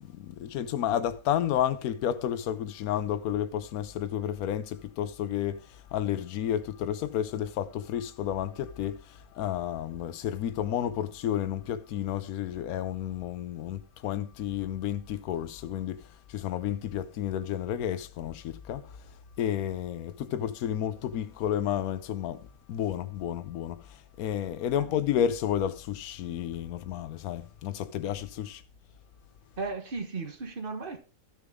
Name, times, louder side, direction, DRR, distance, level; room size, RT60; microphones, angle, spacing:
voice 1, 0.0-28.6, left 10 dB, 80° left, 1.1 m, -31 dB
voice 2, 29.6-31.0, right 4 dB, 40° right, 1.5 m, -35 dB
14.0 x 6.6 x 3.6 m
omnidirectional pair, 1.5 m